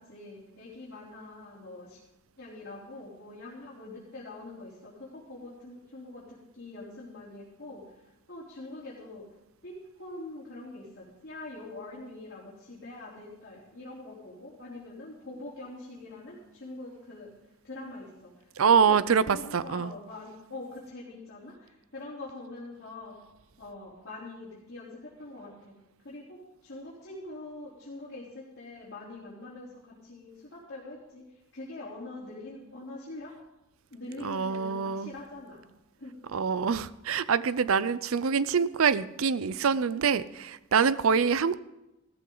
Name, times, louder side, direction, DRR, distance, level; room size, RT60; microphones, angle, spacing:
voice 1, 0.0-2.0 2.4-9.2 9.6-17.4 17.6-19.0 19.3-23.1 23.6-25.7 26.0-33.3 33.9-35.6 36.0-36.2, left 2 dB, 55° left, -8 dB, 3.5 m, -44 dB
voice 2, 18.6-19.9 34.2-35.1 36.3-41.6, right 6 dB, 75° right, 17 dB, 0.5 m, -25 dB
15.5 x 13.5 x 3.9 m, 0.95 s
head